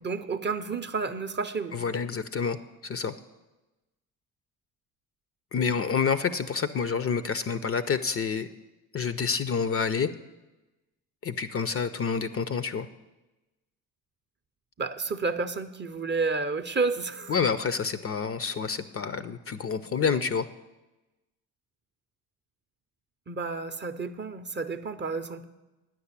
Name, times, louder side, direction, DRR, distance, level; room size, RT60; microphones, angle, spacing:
voice 1, 0.0-1.8 14.8-17.4 23.3-25.5, right 4 dB, 25° right, 9 dB, 0.6 m, -30 dB
voice 2, 1.7-2.6 2.8-3.1 5.5-8.5 8.9-10.1 11.2-12.9 17.3-20.5, left 6 dB, 30° left, 13 dB, 0.5 m, -28 dB
9.5 x 6.1 x 8.1 m, 1.1 s
hypercardioid pair, 50°, 46 cm